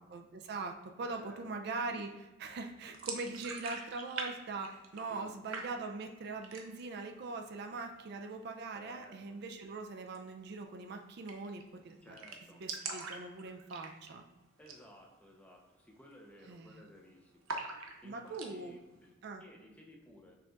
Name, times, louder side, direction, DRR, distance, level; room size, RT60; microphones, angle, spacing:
voice 1, 0.0-12.2 12.5-14.2 16.5-16.8 18.0-18.8 19.2-19.4, right 3 dB, 55° right, 4 dB, 0.4 m, -42 dB
voice 2, 1.1-1.6 5.1-5.3 8.7-9.4 12.0-12.6 14.6-20.3, left 1 dB, 5° left, 0 dB, 0.6 m, -57 dB
sound 1, 2.9-4.3 4.5-5.3 5.5-6.1 6.4-6.9 7.3-7.4 7.7-8.4 10.0-10.2 10.5-10.6 10.8-10.9 11.3-11.6 11.9-12.0 12.2-14.2 14.6-14.9 15.2-15.3 15.8-16.1 16.4-17.0 17.5-18.5, right 4 dB, 90° right, 0.7 m, -42 dB
5.6 x 2.4 x 3.9 m, 1.1 s
head